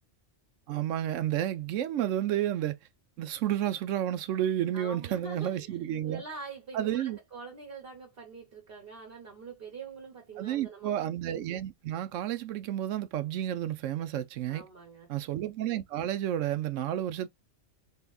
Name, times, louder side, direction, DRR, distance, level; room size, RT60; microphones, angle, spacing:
voice 1, 0.7-2.8 3.2-6.2 6.7-7.2 10.4-14.7 15.1-17.3, right 11 dB, 80° right, 0.9 m, -31 dB
voice 2, 4.7-11.1 14.5-15.1, right 4 dB, 50° right, 1.2 m, -45 dB
3.5 x 3.3 x 2.3 m
omnidirectional pair, 1.3 m